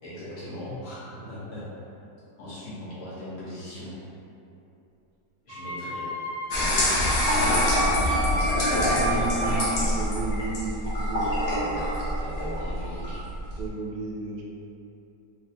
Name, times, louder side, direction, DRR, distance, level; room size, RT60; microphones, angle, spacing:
voice 1, 0.0-1.7 2.4-4.0 5.4-6.1 6.6-7.0 7.9-9.9 11.5-13.2, left 1 dB, 55° left, -10 dB, 1.1 m, -39 dB
voice 2, 1.2-1.5 8.7-11.2 13.6-14.4, right 3 dB, 80° right, -3 dB, 1.2 m, -33 dB
Wind instrument woodwind instrument, 5.5-9.6, equal, 30° right, 1.0 m, -31 dB
sound 1, 6.5-13.7, equal, 75° left, 0.6 m, -25 dB
3.2 x 2.7 x 2.6 m, 2.8 s
omnidirectional pair, 1.9 m